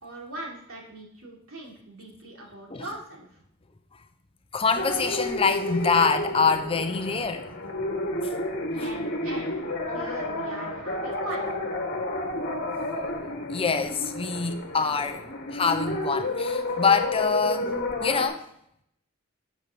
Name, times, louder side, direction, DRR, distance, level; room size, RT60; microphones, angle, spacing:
voice 1, 0.0-3.4 8.7-11.5, right 2 dB, 65° right, 3.5 m, -41 dB
voice 2, 4.5-7.8 8.2-8.3 8.8-8.9 13.2-15.2 15.5-17.7 18.0-18.5, left 5 dB, 25° left, 0.7 m, -25 dB
sound 1, 4.7-18.3, left 1 dB, 45° left, 1.7 m, -31 dB
8.2 x 7.5 x 6.9 m
head